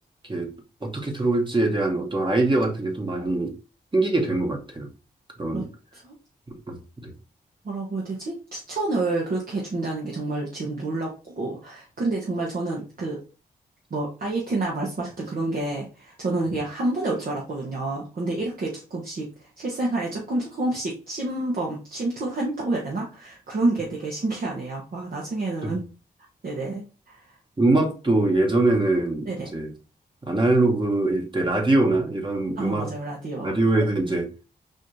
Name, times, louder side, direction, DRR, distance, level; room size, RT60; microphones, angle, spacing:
voice 1, 0.8-3.5 3.9-4.9 5.4-5.7 6.7-7.1 25.6-25.8 27.6-29.7 30.2-32.9 33.4-34.3, right 2 dB, 30° right, 2 dB, 1.2 m, -23 dB
voice 2, 7.6-13.2 13.9-25.8 26.4-27.3 29.3-29.5 32.6-33.5, right 2 dB, 60° right, -3 dB, 1.1 m, -29 dB
4.1 x 2.6 x 3.2 m, 0.34 s
cardioid pair, 55°, 17 cm